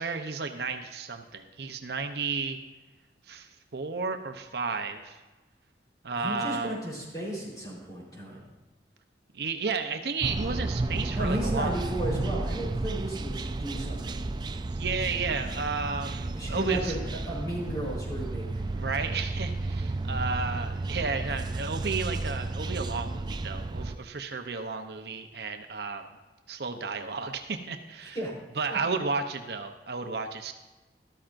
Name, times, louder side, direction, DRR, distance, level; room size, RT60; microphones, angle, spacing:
voice 1, 0.0-2.6 3.3-5.2 6.0-6.8 9.3-11.7 14.7-17.0 18.7-26.0 26.5-28.2 28.5-30.5, right 4 dB, 65° right, 5 dB, 0.7 m, -33 dB
voice 2, 6.1-8.4 11.2-14.2 16.3-18.5 28.1-28.3, right 1 dB, 20° left, -5 dB, 3.8 m, -34 dB
sound 1, 10.2-24.0, right 2 dB, 25° right, 0.3 m, -32 dB
13.5 x 13.0 x 2.6 m, 1.2 s
head